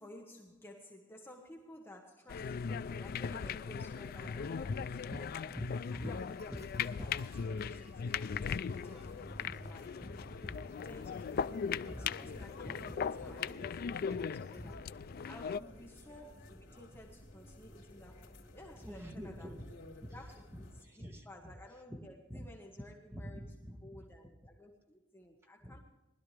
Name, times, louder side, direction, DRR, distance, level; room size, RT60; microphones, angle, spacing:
voice 1, 0.0-5.5 5.9-7.1 7.5-9.9 10.8-12.9 13.2-14.8 15.3-19.5 20.1-20.7 21.2-23.4 23.8-25.8, left 1 dB, 10° left, 0 dB, 1.3 m, -54 dB
sound 1, 2.3-15.6, left 6 dB, 50° left, 0.3 m, -39 dB
voice 2, 4.2-4.8 5.1-6.1 6.5-6.7 7.0-7.1 7.5-7.8 9.2-9.5 9.9-10.7 11.9-12.0 12.4-13.3 13.6-13.7 14.1-14.2 14.5-14.7 15.2-15.3 18.8-19.8 20.0-20.2 20.5-21.6 21.9-22.0 22.3-22.5 23.1-24.3 25.6-25.8, equal, 15° right, 2 dB, 1.8 m, -47 dB
sound 2, 6.1-14.8, right 1 dB, 30° right, 1.6 m, -66 dB
sound 3, 8.1-20.8, left 1 dB, 80° left, 2.7 m, -53 dB
20.0 x 12.5 x 3.3 m, 1.0 s
head